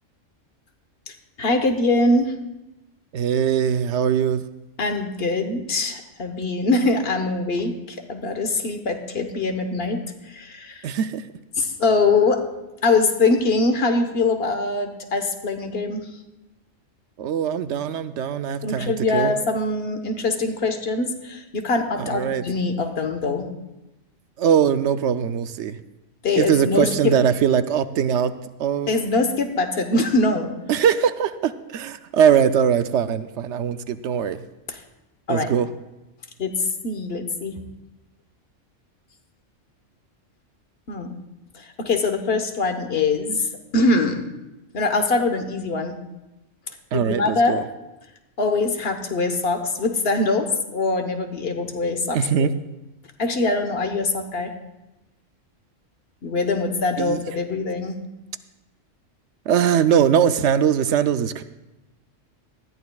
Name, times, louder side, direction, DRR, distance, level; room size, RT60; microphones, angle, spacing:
voice 1, 1.1-2.3 4.8-10.9 11.6-12.5 12.8-16.1 18.6-23.5 26.2-27.1 28.9-30.5 34.7-34.8 35.3-35.5 36.4-36.5 36.8-37.5 40.9-41.1 41.5-43.5 43.7-44.2 44.7-46.0 46.9-47.6 48.4-52.5 53.2-54.5 56.2-58.0, left 3 dB, 55° left, 6 dB, 1.3 m, -23 dB
voice 2, 3.1-4.4 10.8-11.2 17.2-19.3 22.0-22.4 24.4-25.8 26.4-28.3 28.6-28.9 30.7-34.4 35.3-35.7 46.9-47.6 52.1-52.5 57.0-57.2 59.5-61.4, right 8 dB, 70° right, 11 dB, 0.9 m, -21 dB
19.0 x 14.0 x 2.3 m, 0.97 s
omnidirectional pair, 1.3 m